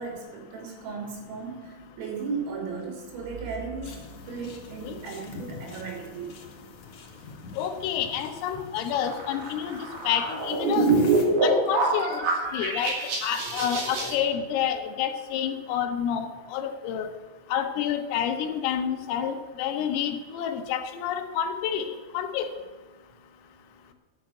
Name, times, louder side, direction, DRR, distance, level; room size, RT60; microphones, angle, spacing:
voice 1, 0.0-4.0 4.3-6.4 7.3-7.4, right 4 dB, 85° right, 0 dB, 5.4 m, -36 dB
sound 1, 3.8-11.3, left 4 dB, 55° left, 2.5 m, -43 dB
voice 2, 7.6-10.9 11.4-12.3 12.5-12.9 13.2-17.1 17.5-22.5, left 9 dB, 90° left, 6 dB, 3.7 m, -29 dB
sound 2, 8.9-14.1, right 3 dB, 55° right, 4.1 m, -25 dB
12.0 x 7.1 x 8.4 m, 1.4 s
omnidirectional pair, 5.7 m